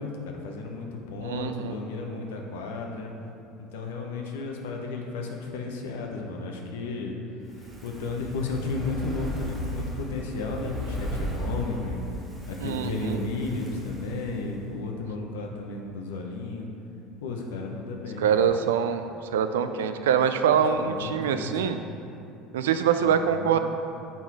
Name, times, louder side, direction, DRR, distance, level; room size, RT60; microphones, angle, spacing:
voice 1, 0.0-3.1 3.6-7.1 7.5-12.0 12.5-16.7 17.2-18.5 20.5-21.8 23.0-23.6, left 3 dB, 85° left, 1 dB, 0.8 m, -34 dB
voice 2, 1.2-1.7 12.6-13.2 18.2-19.1 19.3-21.8 22.5-23.6, right 8 dB, 90° right, 9 dB, 0.3 m, -24 dB
Fire, 7.4-14.8 15.1-15.2, equal, 20° right, 1.3 m, -36 dB
6.1 x 4.2 x 4.6 m, 2.7 s
supercardioid pair, 90°, 0 cm